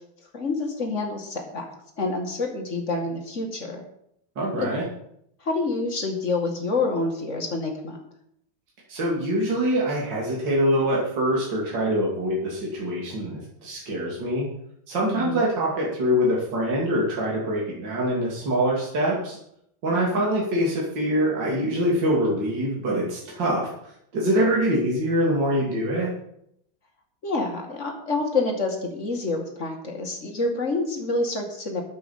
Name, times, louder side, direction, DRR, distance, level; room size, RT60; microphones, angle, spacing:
voice 1, 0.3-1.7 2.0-3.8 4.6-4.7 5.4-8.0 15.1-15.4 19.9-20.2 27.2-31.8, left 3 dB, 35° left, 2 dB, 2.4 m, -27 dB
voice 2, 4.4-4.8 8.9-14.5 14.9-19.4 19.8-23.7 24.1-26.1, equal, 60° right, -4 dB, 3.4 m, -24 dB
9.5 x 7.8 x 7.4 m, 0.73 s
omnidirectional pair, 2.3 m